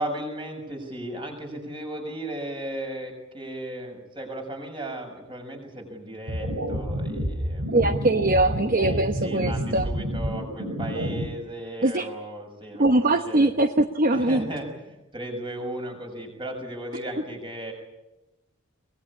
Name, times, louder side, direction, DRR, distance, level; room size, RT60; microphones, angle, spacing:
voice 1, 0.0-7.8 8.8-13.5 14.1-17.7, right 1 dB, 20° right, 3 dB, 6.6 m, -36 dB
sound 1, 6.3-11.3, equal, 85° right, 3.0 m, -29 dB
voice 2, 7.7-9.9 11.8-12.1 12.8-14.5, right 2 dB, 40° right, 8 dB, 1.0 m, -22 dB
23.5 x 20.5 x 8.5 m, 0.98 s
head